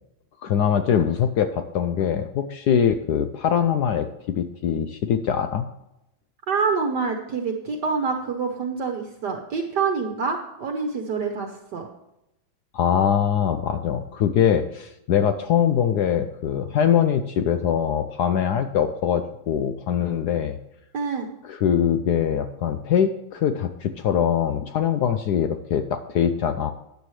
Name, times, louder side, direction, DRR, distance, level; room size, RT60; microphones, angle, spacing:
voice 1, 0.4-5.7 12.7-20.6 21.4-26.7, left 8 dB, 70° left, 9 dB, 1.0 m, -22 dB
voice 2, 6.5-11.9 20.9-21.3, right 5 dB, 60° right, 4 dB, 1.5 m, -26 dB
13.5 x 9.3 x 3.2 m, 0.87 s
omnidirectional pair, 2.2 m